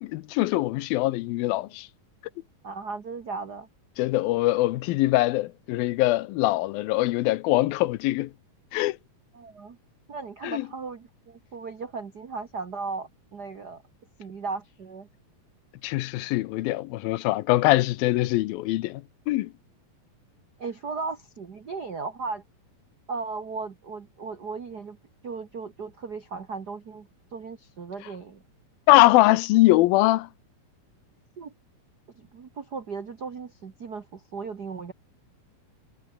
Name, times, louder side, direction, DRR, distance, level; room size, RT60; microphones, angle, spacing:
voice 1, 0.0-1.9 4.0-8.3 8.7-9.0 10.4-10.6 15.8-19.5 28.9-30.3, left 18 dB, 85° left, 2.5 m, -22 dB
voice 2, 2.6-3.7 9.3-9.8 10.1-13.8 14.2-15.1 20.6-22.4 23.1-25.0 25.2-28.4 31.4-31.5 32.2-34.9, right 4 dB, 65° right, 1.0 m, -36 dB
omnidirectional pair, 4.2 m